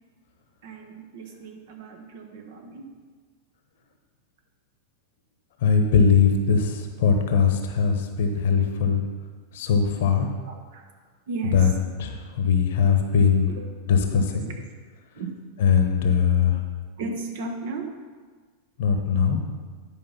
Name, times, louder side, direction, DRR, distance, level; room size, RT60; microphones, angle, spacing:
voice 1, 0.6-2.9 10.1-10.8 11.3-11.7 13.5-13.7 14.1-14.4 15.1-15.3 16.0-16.1 17.0-17.9, right 4 dB, 55° right, 3 dB, 1.3 m, -35 dB
voice 2, 5.6-9.0 9.5-10.3 11.5-11.7 12.0-13.5 13.9-14.4 15.6-16.6 18.8-19.4, left 6 dB, 55° left, 5 dB, 1.1 m, -20 dB
10.5 x 5.2 x 5.6 m, 1.5 s
figure-of-eight pair, 90°, 0 cm